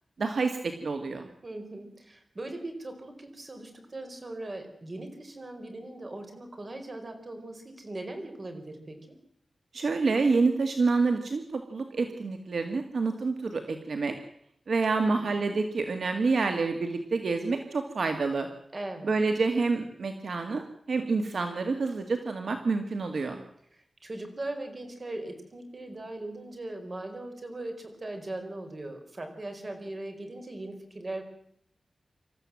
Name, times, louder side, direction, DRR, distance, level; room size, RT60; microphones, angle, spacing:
voice 1, 0.2-1.3 9.7-14.1 14.7-18.5 19.0-23.4, right 4 dB, 75° right, 6 dB, 2.0 m, -28 dB
voice 2, 1.4-9.2 14.9-15.3 18.7-19.1 23.7-31.2, right 2 dB, 40° right, 6 dB, 4.8 m, -39 dB
27.0 x 14.0 x 7.7 m, 0.72 s
wide cardioid pair, 100°, 0 cm